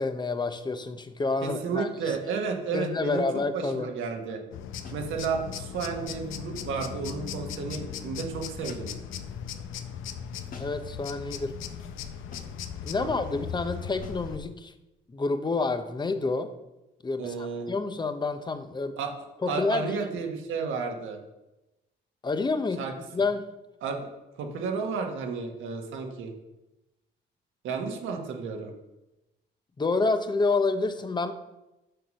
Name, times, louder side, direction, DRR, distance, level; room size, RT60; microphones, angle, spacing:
voice 1, 0.0-2.2 2.7-3.9 10.5-11.6 12.8-14.7 15.1-16.5 17.0-19.0 19.4-19.9 22.2-22.8 23.1-23.5 29.8-31.3, left 3 dB, 20° left, 10 dB, 0.8 m, -28 dB
voice 2, 1.4-3.2 3.5-4.4 4.9-8.9 13.0-13.1 17.2-17.7 19.0-19.1 19.5-21.2 22.8-22.9 23.8-24.1 24.4-26.3 27.6-28.7, right 5 dB, 85° right, 2 dB, 1.5 m, -32 dB
sound 1, 4.5-14.4, left 8 dB, 85° left, 0.7 m, -38 dB
sound 2, 4.8-5.1 6.7-7.0 8.7-9.1 10.5-10.9 12.3-12.7 14.0-14.3, left 4 dB, 45° left, 1.5 m, -49 dB
6.6 x 6.1 x 5.3 m, 0.98 s
cardioid pair, 90°, 20 cm